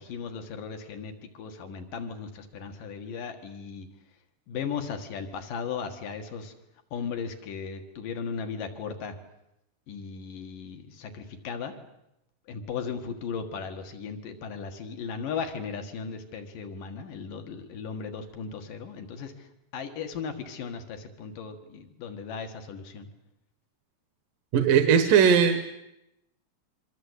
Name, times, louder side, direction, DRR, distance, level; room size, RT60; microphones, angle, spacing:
voice 1, 0.0-3.9 4.5-6.5 6.9-9.2 9.9-11.7 12.5-23.1, left 6 dB, 90° left, 6 dB, 3.6 m, -36 dB
voice 2, 24.5-25.6, right 7 dB, 85° right, 8 dB, 2.9 m, -19 dB
27.0 x 24.0 x 8.3 m, 0.87 s
omnidirectional pair, 3.7 m